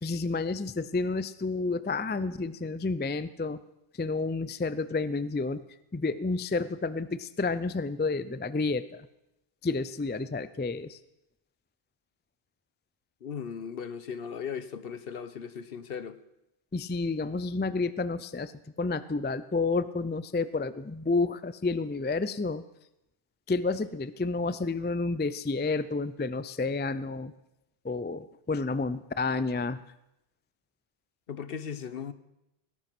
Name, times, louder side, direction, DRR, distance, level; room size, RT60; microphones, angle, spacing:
voice 1, 0.0-3.6 4.0-5.6 5.9-8.8 9.6-11.0 16.7-18.5 18.8-22.6 23.5-27.3 27.8-29.8, left 3 dB, 15° left, 0.3 m, -30 dB
voice 2, 13.2-16.2 31.3-32.1, left 7 dB, 65° left, 1.1 m, -37 dB
18.0 x 11.0 x 6.0 m
omnidirectional pair, 1.0 m